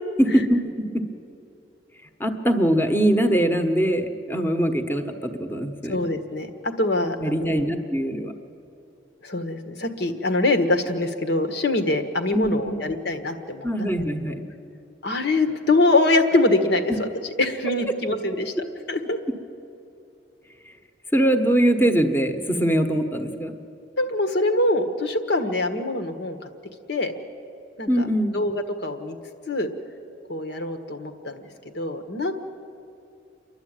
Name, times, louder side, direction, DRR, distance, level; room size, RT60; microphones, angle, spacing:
voice 1, 0.2-1.0 2.2-6.0 7.2-8.3 12.3-12.8 13.6-14.4 21.1-23.5 27.9-28.4, right 1 dB, 10° left, 6 dB, 1.2 m, -22 dB
voice 2, 5.9-7.7 9.2-13.7 15.0-17.1 17.4-18.5 18.9-19.2 24.0-26.5 26.9-27.1 27.8-27.9 28.3-29.1 29.5-29.7 30.3-31.4 31.7-32.3, left 2 dB, 65° left, 7 dB, 1.6 m, -23 dB
29.0 x 11.5 x 9.0 m, 2.8 s
head